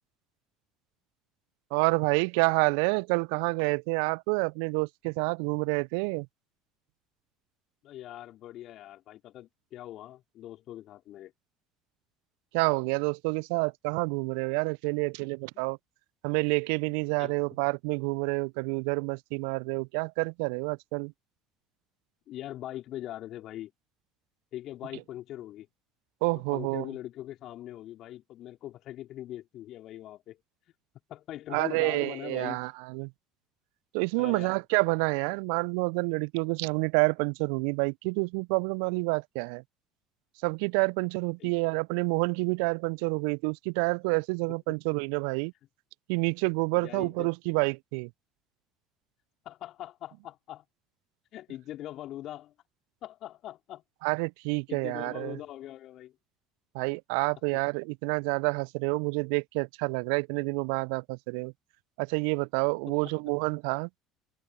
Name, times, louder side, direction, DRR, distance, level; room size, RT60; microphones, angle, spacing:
voice 1, 1.7-6.3 12.5-15.8 16.2-21.1 26.2-26.9 31.5-33.1 33.9-39.6 40.4-45.5 46.1-48.1 54.0-55.4 56.7-61.5 62.0-63.9, right 35 dB, 65° right, 0.8 m, -28 dB
voice 2, 7.8-11.3 15.5-15.6 17.2-17.3 22.3-23.7 24.5-25.7 26.3-30.4 31.1-32.6 34.2-34.6 41.4-41.5 44.7-44.8 46.7-47.3 49.4-50.6 51.3-52.5 53.0-53.8 54.7-56.1 57.5-57.6 62.9-63.1, left 13 dB, 50° left, 4.8 m, -42 dB
figure-of-eight pair, 65°, 0 cm